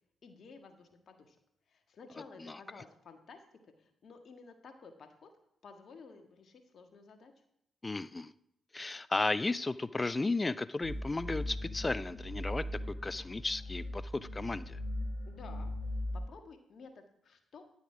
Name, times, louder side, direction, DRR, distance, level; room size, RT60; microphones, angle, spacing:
voice 1, 0.2-1.4 1.7-5.3 5.6-7.3 15.3-15.7 16.1-17.6, left 4 dB, 60° left, 6 dB, 1.6 m, -53 dB
voice 2, 7.8-8.3 8.7-12.6 13.0-14.8, left 3 dB, 30° left, 17 dB, 0.5 m, -34 dB
sound 1, 10.8-16.2, left 1 dB, 80° left, 4.0 m, -39 dB
11.0 x 7.2 x 4.9 m, 0.74 s
hypercardioid pair, 45°, 0 cm